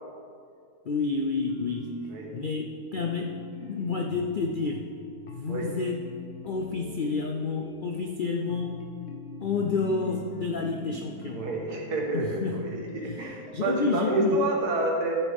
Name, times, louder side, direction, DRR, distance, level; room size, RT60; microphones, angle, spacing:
voice 1, 0.9-2.0 2.3-2.7 2.9-4.9 5.4-6.0 6.5-8.9 9.4-11.4 12.1-12.7 13.0-14.4, left 4 dB, 65° left, 2 dB, 0.5 m, -29 dB
sound 1, 1.5-14.6, left 2 dB, 50° left, 1.1 m, -44 dB
voice 2, 11.3-15.1, right 2 dB, 90° right, 0 dB, 2.0 m, -28 dB
13.5 x 7.0 x 3.6 m, 2.3 s
omnidirectional pair, 1.6 m